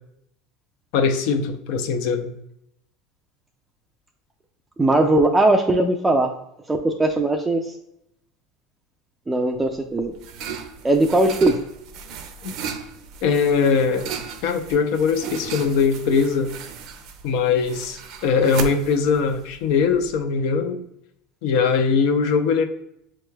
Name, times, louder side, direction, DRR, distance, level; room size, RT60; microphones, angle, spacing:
voice 1, 0.9-2.3 12.4-12.5 13.2-14.1 14.4-16.5 17.2-20.8 21.4-22.7, left 5 dB, 65° left, 7 dB, 0.6 m, -21 dB
voice 2, 4.8-6.3 6.7-7.6 9.3-10.1 10.8-11.6, right 2 dB, 10° right, 3 dB, 0.4 m, -19 dB
sound 1, 9.6-20.2, right 6 dB, 60° right, 0.6 m, -36 dB
6.9 x 3.1 x 2.2 m, 0.78 s
supercardioid pair, 130°, 0 cm